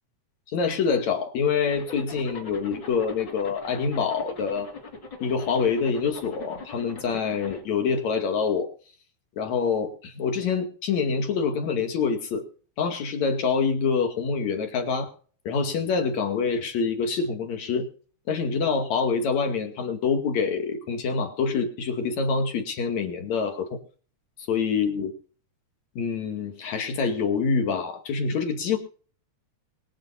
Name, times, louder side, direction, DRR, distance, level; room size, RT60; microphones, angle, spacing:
voice 1, 0.5-4.7 5.2-8.7 9.4-12.4 12.8-15.1 15.5-17.9 18.3-23.8 24.5-25.1 26.0-28.8, left 5 dB, 70° left, 5 dB, 3.5 m, -26 dB
Zipper (clothing), 1.7-7.6, left 2 dB, 40° left, 3.1 m, -41 dB
23.0 x 8.6 x 4.3 m, 0.43 s
omnidirectional pair, 3.4 m